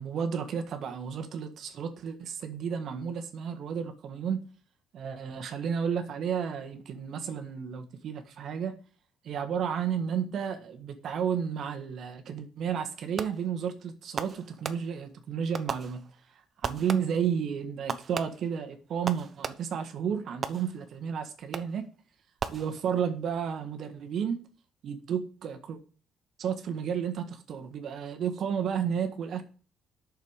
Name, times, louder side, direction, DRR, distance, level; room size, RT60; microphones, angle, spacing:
voice 1, 0.0-4.4 4.9-8.7 9.2-16.0 16.6-21.8 22.5-24.4 24.8-25.8 26.4-29.4, right 7 dB, 60° right, 1.7 m, -32 dB
Fireworks, 13.2-13.6 14.2-15.2 15.5-16.3 16.6-17.3 17.9-19.9 20.4-21.0 21.5-21.9 22.4-23.1, right 6 dB, 40° right, 0.9 m, -38 dB
8.5 x 6.7 x 8.1 m
cardioid pair, 120°, 0 cm